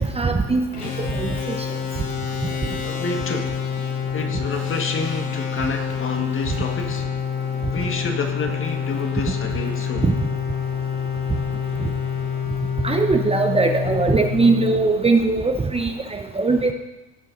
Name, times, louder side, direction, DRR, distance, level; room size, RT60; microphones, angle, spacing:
voice 1, 0.2-0.7 1.2-1.6 10.0-10.1 12.8-16.7, right 3 dB, 15° right, 4 dB, 0.8 m, -20 dB
sound 1, 0.7-15.3, left 7 dB, 70° left, 3.3 m, -27 dB
voice 2, 2.5-3.6 4.1-7.1 7.7-10.1, left 4 dB, 35° left, 4 dB, 1.7 m, -29 dB
16.5 x 5.6 x 3.9 m, 1.0 s
hypercardioid pair, 75°, 35 cm